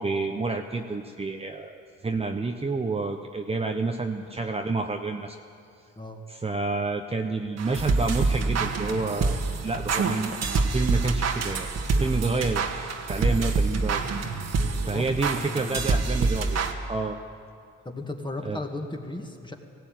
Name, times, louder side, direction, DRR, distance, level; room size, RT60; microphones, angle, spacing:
voice 1, 0.0-5.4 6.3-10.4 10.7-11.7 12.0-12.7 13.0-14.0 14.9-17.2 18.4-18.6, right 3 dB, 20° right, 3 dB, 1.0 m, -29 dB
sound 1, 7.6-16.7, right 4 dB, 60° right, 1.7 m, -26 dB
voice 2, 11.8-12.2 14.5-15.9 17.8-19.5, left 2 dB, 15° left, 3 dB, 2.3 m, -37 dB
17.5 x 16.5 x 9.3 m, 2.3 s
cardioid pair, 90°, 30 cm